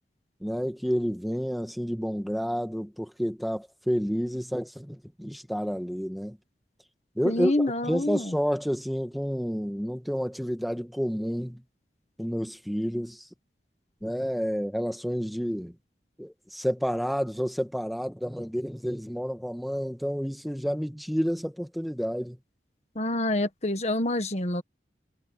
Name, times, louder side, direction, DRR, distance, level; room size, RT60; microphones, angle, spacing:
voice 1, 0.4-6.4 7.2-11.6 12.2-13.2 14.0-15.7 16.2-22.4, equal, ahead, 1.6 m, -30 dB
voice 2, 7.2-8.3 22.9-24.6, left 1 dB, 40° left, 1.6 m, -27 dB
head